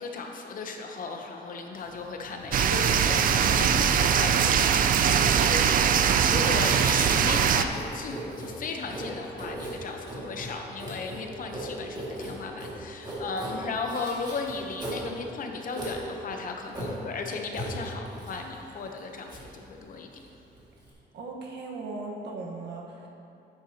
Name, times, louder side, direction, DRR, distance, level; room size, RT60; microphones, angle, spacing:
voice 1, 0.0-20.2, left 4 dB, 50° left, 3 dB, 0.8 m, -36 dB
Writing, 1.7-20.9, equal, 25° right, 2.1 m, -39 dB
sound 1, 2.5-7.6, right 8 dB, 55° right, 0.4 m, -22 dB
voice 2, 21.1-23.1, right 3 dB, 85° right, -1 dB, 1.3 m, -38 dB
10.0 x 9.0 x 2.9 m, 2.8 s
cardioid pair, 160°, 18 cm